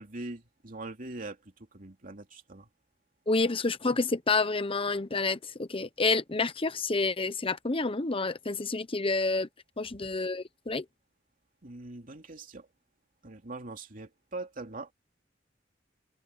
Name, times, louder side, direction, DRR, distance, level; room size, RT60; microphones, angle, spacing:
voice 1, 0.0-2.7 11.6-12.7 13.2-14.9, right 2 dB, 45° right, 2.8 m, -42 dB
voice 2, 3.3-9.5 9.8-10.8, left 3 dB, 30° left, 1.0 m, -29 dB
head